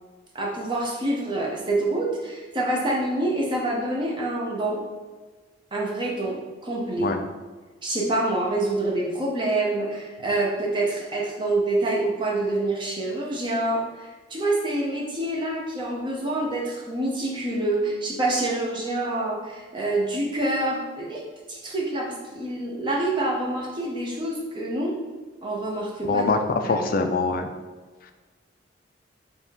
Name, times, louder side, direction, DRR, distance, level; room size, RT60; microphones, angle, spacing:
voice 1, 0.3-4.8 5.7-7.1 7.8-21.2 21.5-24.9 25.4-26.2 26.6-27.1, right 2 dB, 25° right, -2 dB, 0.6 m, -26 dB
voice 2, 26.1-26.4 26.6-27.5, left 4 dB, 50° left, 6 dB, 0.3 m, -23 dB
3.4 x 2.3 x 4.3 m, 1.3 s
head